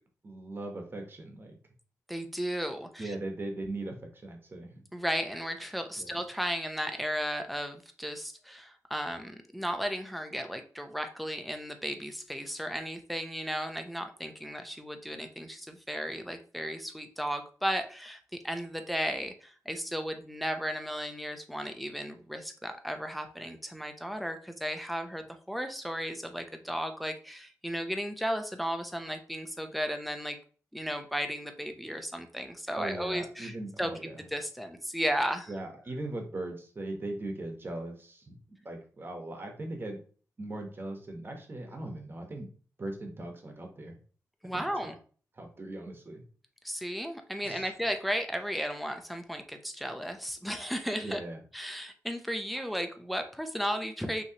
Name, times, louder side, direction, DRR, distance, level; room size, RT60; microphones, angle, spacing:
voice 1, 0.2-1.6 3.0-4.8 6.0-6.2 32.7-34.1 35.5-38.4 38.6-40.0 40.4-42.5 42.8-44.0 44.5-44.9 45.4-46.2 47.4-47.7 51.0-51.4, right 2 dB, 35° right, 3 dB, 1.1 m, -39 dB
voice 2, 2.1-3.1 4.9-30.4 30.7-33.9 34.3-35.5 44.4-44.9 46.6-51.2 51.5-54.2, equal, ahead, 6 dB, 0.6 m, -35 dB
5.7 x 3.0 x 2.9 m, 0.41 s
wide cardioid pair, 110°, 6 cm